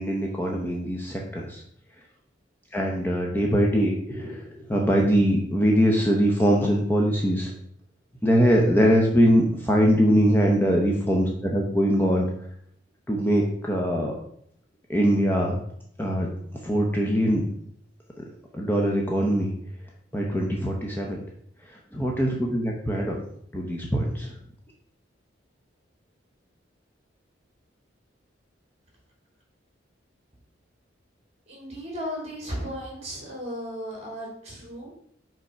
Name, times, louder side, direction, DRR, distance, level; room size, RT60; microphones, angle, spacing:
voice 1, 0.0-1.6 2.7-7.5 8.2-12.3 13.1-14.1 14.9-15.5 16.0-16.3 16.6-17.4 18.5-19.5 20.1-21.2 21.7-23.2 23.5-24.3, equal, 10° left, -1 dB, 0.7 m, -22 dB
voice 2, 31.5-35.0, equal, 35° right, -2 dB, 2.8 m, -35 dB
5.4 x 3.7 x 5.5 m, 0.68 s
head